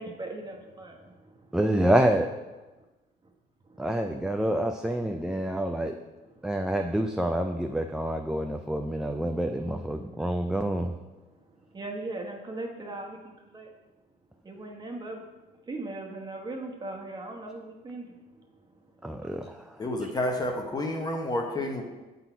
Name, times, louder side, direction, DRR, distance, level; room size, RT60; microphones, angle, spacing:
voice 1, 0.0-1.6 2.8-2.9 3.2-3.3 3.6-4.0 6.1-6.7 8.7-9.1 9.8-10.4 11.1-13.7 14.4-19.3, right 2 dB, 25° right, 1 dB, 1.1 m, -41 dB
voice 2, 1.5-2.3 3.8-5.9 6.4-10.9 19.0-19.7, right 1 dB, 5° right, 4 dB, 0.3 m, -27 dB
voice 3, 19.8-21.8, left 1 dB, 25° left, 2 dB, 1.0 m, -29 dB
7.3 x 4.1 x 4.5 m, 1.1 s
cardioid pair, 110°, 17 cm